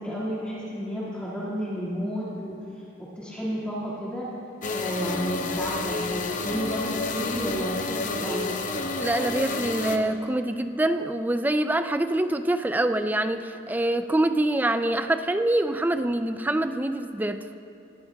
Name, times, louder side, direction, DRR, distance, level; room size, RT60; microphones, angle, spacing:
voice 1, 0.0-2.6 3.0-4.3 4.7-8.5, equal, 5° left, -9 dB, 2.0 m, -31 dB
sound 1, 4.6-10.0, left 3 dB, 40° left, 0.7 m, -30 dB
voice 2, 9.0-17.5, right 1 dB, 10° right, 9 dB, 0.4 m, -25 dB
21.0 x 15.0 x 2.3 m, 2.9 s
head